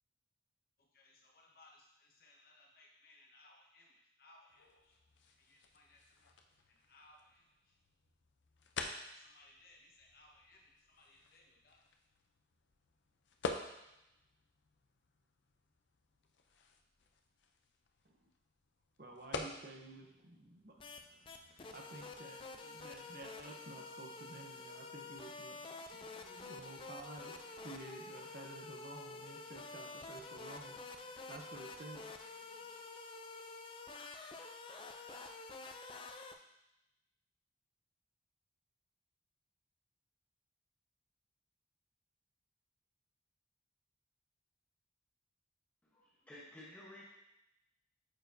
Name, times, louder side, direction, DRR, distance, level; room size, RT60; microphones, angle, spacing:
voice 1, 0.8-5.0 5.4-6.3 6.7-7.8 9.0-11.9, left 2 dB, 50° left, -1 dB, 1.2 m, -65 dB
sound 1, 4.5-22.2, left 3 dB, 75° left, 0.6 m, -50 dB
voice 2, 19.0-21.3 21.7-32.3 32.6-32.7, right 2 dB, 55° right, 1 dB, 0.8 m, -53 dB
sound 2, 20.8-21.0 21.3-36.3, left 3 dB, 25° left, 0.4 m, -49 dB
voice 3, 45.8-47.1, left 1 dB, 10° left, -6 dB, 0.9 m, -54 dB
8.8 x 4.7 x 2.7 m, 0.89 s
head